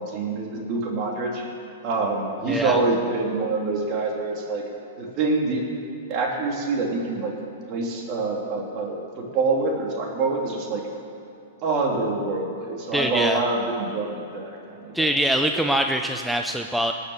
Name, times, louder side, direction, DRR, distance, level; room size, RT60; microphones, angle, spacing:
voice 1, 0.0-1.4 1.8-4.6 5.0-5.6 6.1-7.3 7.7-10.8 11.6-15.1 15.4-15.7, right 3 dB, 40° right, 0 dB, 3.0 m, -26 dB
voice 2, 2.5-2.8 12.9-13.4 14.9-16.9, right 1 dB, ahead, 4 dB, 0.5 m, -23 dB
19.0 x 6.6 x 7.2 m, 2.8 s
hypercardioid pair, 125°, 0 cm